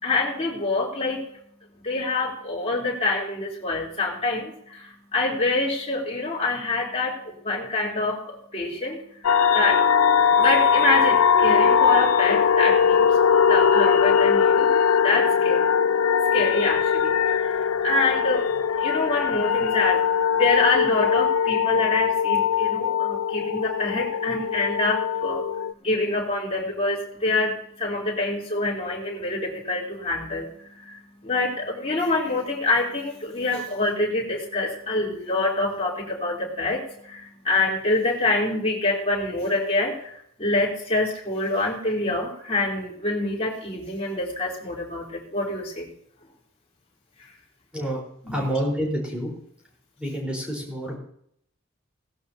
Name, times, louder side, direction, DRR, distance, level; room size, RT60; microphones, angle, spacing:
voice 1, 0.0-1.2 1.8-9.9 10.4-13.2 13.4-14.7 15.0-15.6 16.3-25.5 25.8-40.1 40.4-45.9 48.3-48.4, left 2 dB, 30° left, -5 dB, 3.6 m, -26 dB
sound 1, 9.2-25.7, left 7 dB, 80° left, 0.4 m, -21 dB
voice 2, 48.3-49.3 50.0-51.0, equal, 5° right, -3 dB, 4.4 m, -28 dB
18.0 x 12.0 x 2.9 m, 0.69 s
head